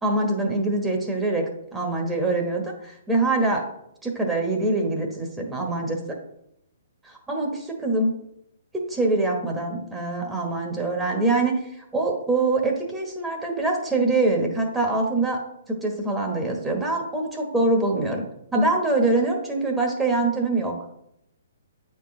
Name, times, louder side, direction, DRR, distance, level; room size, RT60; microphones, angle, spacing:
voice 1, 0.0-3.6 4.0-6.0 7.0-8.1 8.9-15.4 15.7-18.2 18.5-20.7, right 2 dB, 10° right, 1 dB, 1.2 m, -24 dB
8.8 x 4.5 x 3.2 m, 0.80 s
figure-of-eight pair, 130°, 0 cm